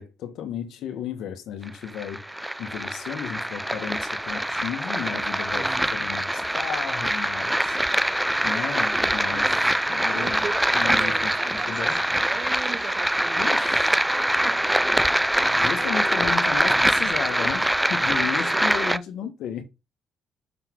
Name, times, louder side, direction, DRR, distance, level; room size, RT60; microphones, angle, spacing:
voice 1, 0.0-2.2 2.6-7.8 8.4-9.6 9.9-10.4 10.7-12.0 13.4-13.9 15.6-19.6, left 8 dB, 80° left, 1.6 m, -34 dB
sound 1, 1.6-19.0, right 1 dB, 5° right, 0.4 m, -24 dB
voice 2, 5.5-5.9 9.3-9.7 10.1-13.6 14.4-14.8 15.3-16.3 18.1-19.3, right 6 dB, 50° right, 0.8 m, -38 dB
6.7 x 4.1 x 4.7 m
cardioid pair, 90°, 0 cm